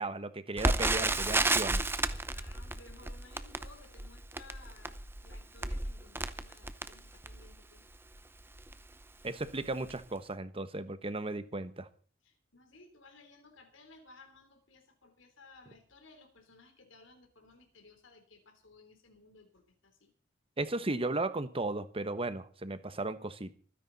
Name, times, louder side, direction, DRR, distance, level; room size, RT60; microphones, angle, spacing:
voice 1, 0.0-1.8 9.2-11.9 20.6-23.5, right 2 dB, 30° right, 1.1 m, -35 dB
Crackle, 0.6-7.5 8.1-8.2 8.6-8.8 9.4-9.6 9.9-10.0, right 2 dB, 10° right, 0.7 m, -32 dB
voice 2, 2.3-7.8 12.2-20.1, left 3 dB, 80° left, 3.6 m, -58 dB
25.5 x 10.0 x 4.1 m
head